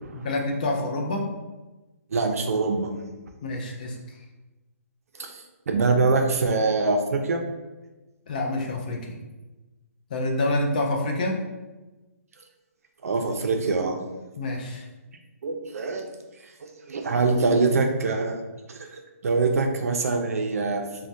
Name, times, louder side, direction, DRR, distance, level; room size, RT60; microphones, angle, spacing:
voice 1, 0.1-1.3 3.4-4.0 8.3-9.2 10.1-11.4 14.4-14.9, left 2 dB, 30° left, 1 dB, 0.4 m, -27 dB
voice 2, 2.1-2.9 5.2-7.5 13.0-14.0 15.4-16.0 16.6-18.4 18.7-20.8, right 3 dB, 70° right, 4 dB, 0.5 m, -24 dB
3.2 x 2.2 x 2.6 m, 1.1 s
hypercardioid pair, 170°, 8 cm